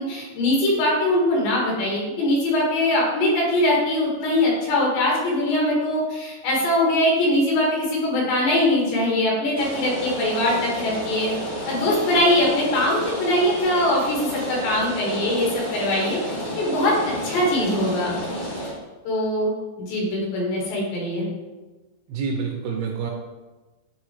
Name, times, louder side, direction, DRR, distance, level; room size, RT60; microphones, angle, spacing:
voice 1, 0.0-11.3 11.7-16.2 16.6-17.0 17.2-18.1 19.1-19.5 19.8-21.2, left 1 dB, 90° left, -3 dB, 3.9 m, -22 dB
Rain, 9.6-18.7, equal, 70° left, 0.5 m, -31 dB
voice 2, 22.1-23.1, right 5 dB, 85° right, 1 dB, 2.2 m, -27 dB
9.6 x 3.3 x 3.2 m, 1.2 s
omnidirectional pair, 4.8 m